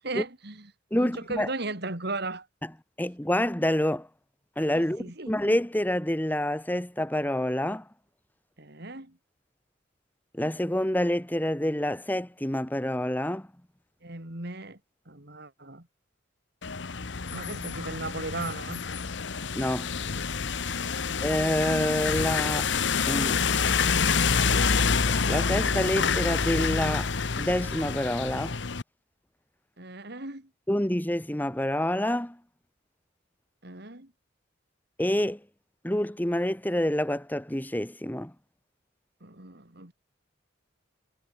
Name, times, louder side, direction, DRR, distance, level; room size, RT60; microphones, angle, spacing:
voice 1, 0.0-0.7 1.0-2.5 4.7-5.4 8.6-9.2 14.0-14.8 15.1-15.9 17.3-18.8 29.8-30.5 33.6-34.1 39.2-39.9, right 2 dB, 55° right, 3.5 m, -37 dB
voice 2, 0.9-1.5 3.0-4.1 4.6-7.8 10.3-13.5 19.5-19.9 21.2-22.7 23.1-23.4 25.3-28.6 30.7-32.4 35.0-35.4 35.8-38.3, left 1 dB, 10° left, 1.4 m, -27 dB
small truck passes by, 16.6-28.8, left 5 dB, 60° left, 1.0 m, -27 dB
head